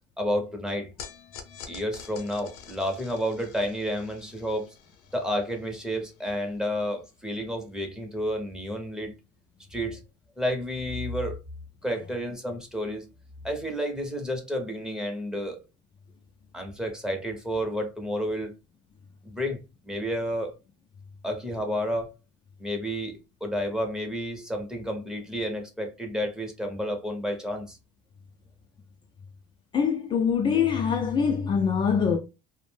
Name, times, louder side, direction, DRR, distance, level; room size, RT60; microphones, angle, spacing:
voice 1, 0.2-0.9 1.7-4.7 5.1-9.2 9.7-10.0 10.4-11.4 11.8-13.1 13.4-15.6 16.5-18.6 19.2-20.5 21.2-22.1 22.6-27.8, equal, 5° right, 0.7 m, -31 dB
sound 1, 1.0-7.4, left 7 dB, 75° left, 0.7 m, -48 dB
voice 2, 29.7-32.2, left 6 dB, 30° left, 0.4 m, -24 dB
2.5 x 2.1 x 3.2 m
supercardioid pair, 120°, 15 cm